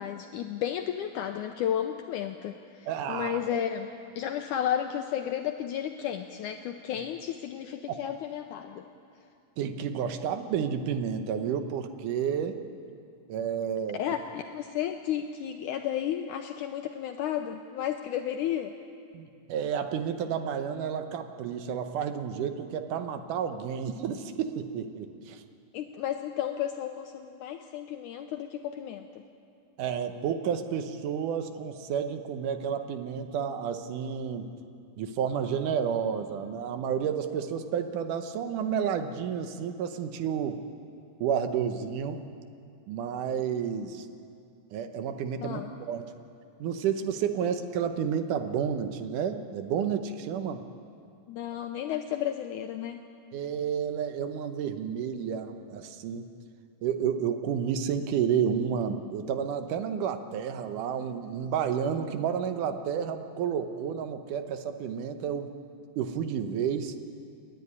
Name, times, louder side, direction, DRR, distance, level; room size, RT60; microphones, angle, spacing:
voice 1, 0.0-3.9 4.2-8.9 13.9-18.7 25.7-29.1 45.4-45.7 47.4-47.5 51.3-53.0, left 10 dB, 80° left, 5 dB, 1.9 m, -33 dB
voice 2, 2.9-3.4 7.9-8.0 9.6-12.6 13.3-14.0 19.1-25.4 29.8-34.5 35.0-40.6 41.2-42.2 42.9-44.1 44.7-46.1 46.6-50.6 53.3-56.3 56.8-65.5 66.0-66.9, right 8 dB, 70° right, 8 dB, 2.3 m, -31 dB
28.5 x 10.5 x 9.7 m, 2.4 s
omnidirectional pair, 4.2 m